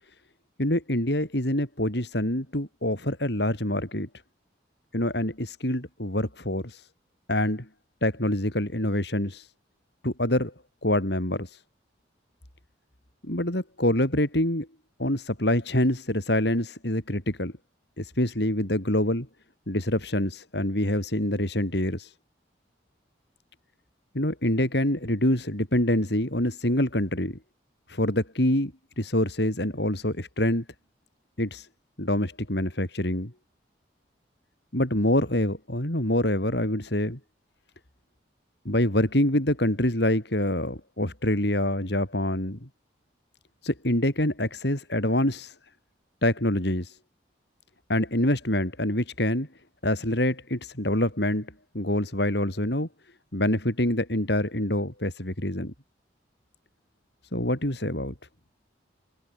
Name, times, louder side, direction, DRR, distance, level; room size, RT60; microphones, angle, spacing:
voice 1, 0.6-4.1 4.9-6.8 7.3-7.7 8.0-9.5 10.0-10.5 10.8-11.6 13.2-14.7 15.0-17.5 18.0-19.3 19.7-22.1 24.1-27.4 27.9-30.6 31.4-31.7 32.0-33.3 34.7-37.2 38.6-42.7 43.6-45.5 46.2-47.0 47.9-49.5 49.8-52.9 53.3-55.7 57.3-58.1, left 1 dB, 60° left, 4.4 m, -26 dB
head